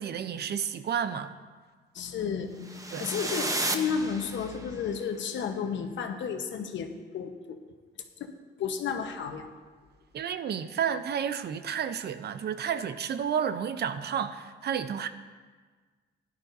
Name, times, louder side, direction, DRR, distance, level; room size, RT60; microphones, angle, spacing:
voice 1, 0.0-1.3 2.9-3.1 10.1-15.1, right 8 dB, 55° right, 11 dB, 0.6 m, -31 dB
voice 2, 1.9-7.6 8.2-8.3 8.6-9.5, left 6 dB, 70° left, 5 dB, 1.1 m, -32 dB
sound 1, 2.6-4.8, right 2 dB, 15° right, 0.9 m, -33 dB
16.0 x 11.0 x 2.7 m, 1.5 s
cardioid pair, 90°, 20 cm